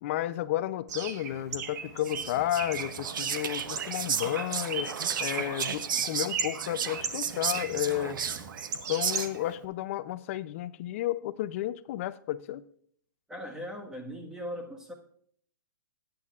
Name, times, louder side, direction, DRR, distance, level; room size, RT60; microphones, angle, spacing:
voice 1, 0.0-4.9 5.2-8.2 8.9-12.6, left 13 dB, 40° left, 0.5 m, -32 dB
Bird, 0.9-9.6, right 6 dB, 55° right, 1.4 m, -38 dB
Whispering, 2.0-9.5, right 7 dB, 80° right, 0.9 m, -34 dB
voice 2, 13.3-14.9, equal, 5° right, 1.4 m, -39 dB
20.5 x 9.2 x 2.4 m
hypercardioid pair, 155°, 11 cm